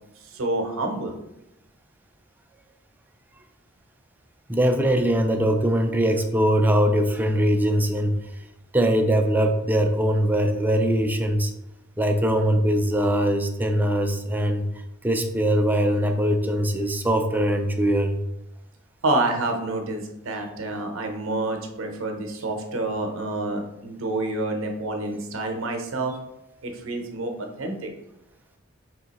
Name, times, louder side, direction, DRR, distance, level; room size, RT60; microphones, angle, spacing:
voice 1, 0.3-1.1 19.0-26.1 26.6-27.9, right 2 dB, 65° right, 3 dB, 0.7 m, -28 dB
voice 2, 4.5-8.2 8.7-11.5 12.0-14.7 15.0-18.1, equal, 10° right, 5 dB, 0.3 m, -21 dB
3.6 x 2.8 x 4.0 m, 0.87 s
head